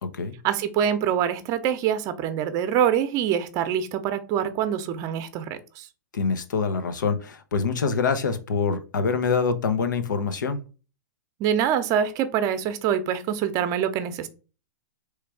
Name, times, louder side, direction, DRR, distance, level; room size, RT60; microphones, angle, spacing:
voice 1, 0.4-5.9 11.4-14.3, right 9 dB, 35° right, 10 dB, 0.7 m, -25 dB
voice 2, 6.1-10.6, left 5 dB, 90° left, 10 dB, 0.8 m, -25 dB
3.4 x 3.2 x 4.6 m, 0.35 s
hypercardioid pair, 130°, 10 cm